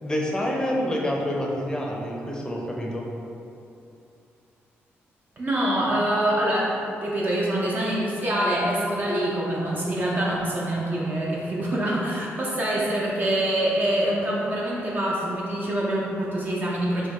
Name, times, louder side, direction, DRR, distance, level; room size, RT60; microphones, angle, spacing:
voice 1, 0.0-3.1, equal, 15° left, -2 dB, 0.6 m, -27 dB
voice 2, 5.4-17.1, right 1 dB, 40° right, -5 dB, 0.6 m, -25 dB
4.3 x 2.3 x 2.9 m, 2.7 s
cardioid pair, 80°, 5 cm